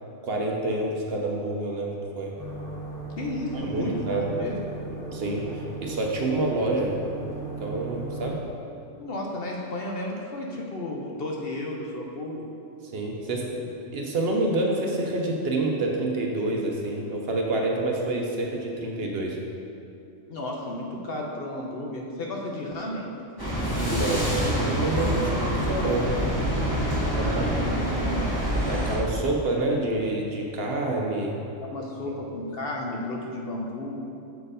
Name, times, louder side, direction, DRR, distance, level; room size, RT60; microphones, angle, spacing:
voice 1, 0.2-2.3 3.5-4.3 5.1-6.9 7.6-8.4 12.9-19.4 23.8-26.1 27.2-27.4 28.7-31.4 32.1-32.2, right 2 dB, 55° right, 0 dB, 0.8 m, -28 dB
sound 1, 2.4-8.4, right 4 dB, 10° right, 1.3 m, -37 dB
voice 2, 3.2-4.6 9.0-12.4 20.3-23.1 26.9-28.3 31.6-34.0, left 1 dB, 55° left, -1 dB, 0.8 m, -33 dB
sound 2, 23.4-29.0, equal, 15° left, 1.5 m, -26 dB
6.9 x 4.4 x 4.9 m, 2.7 s
omnidirectional pair, 1.3 m